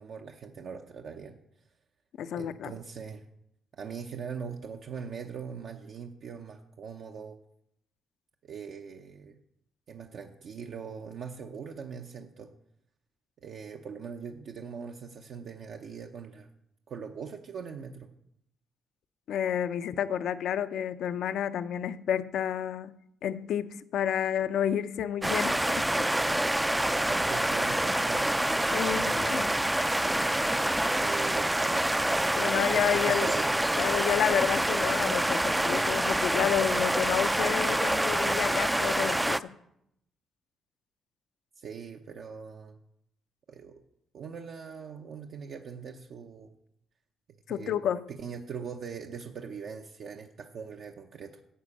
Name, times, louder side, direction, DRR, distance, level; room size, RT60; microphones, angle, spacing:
voice 1, 0.0-1.4 2.4-3.2 3.7-7.4 8.4-9.4 9.9-12.5 13.4-16.5 16.9-18.1 27.1-29.8 31.0-31.9 32.3-33.6 41.6-42.8 43.5-43.8 44.1-46.5 47.5-47.7 48.1-51.4, right 6 dB, 65° right, 0.8 m, -41 dB
voice 2, 2.2-2.7 19.3-25.9 28.7-29.5 32.3-33.3 33.8-39.5 47.5-48.1, left 9 dB, 75° left, 0.5 m, -30 dB
sound 1, 25.2-39.4, right 1 dB, 10° right, 0.4 m, -27 dB
11.5 x 5.1 x 8.5 m
cardioid pair, 90°, 0 cm